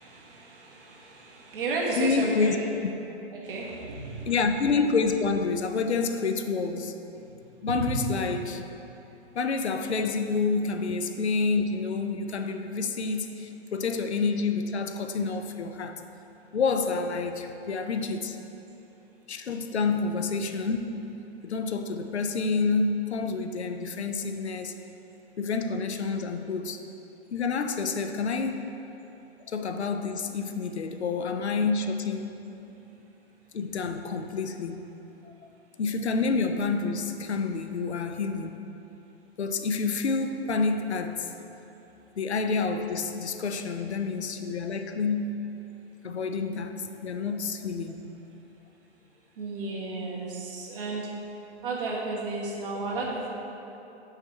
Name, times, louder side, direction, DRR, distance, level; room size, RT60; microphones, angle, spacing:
voice 1, 0.0-2.7 3.3-4.3 7.1-7.2 7.7-8.0 49.4-51.1 51.6-53.3, right 3 dB, 55° right, -3 dB, 1.5 m, -33 dB
voice 2, 2.0-2.6 4.3-7.0 7.6-8.6 9.3-16.0 16.5-18.4 19.3-21.2 21.4-24.7 25.4-26.8 27.3-28.6 29.5-32.4 33.5-34.9 35.2-35.5 35.8-38.5 39.4-41.3 42.2-45.3 46.0-48.0, left 4 dB, 75° left, 7 dB, 0.6 m, -28 dB
5.7 x 4.5 x 5.4 m, 2.9 s
figure-of-eight pair, 110°, 33 cm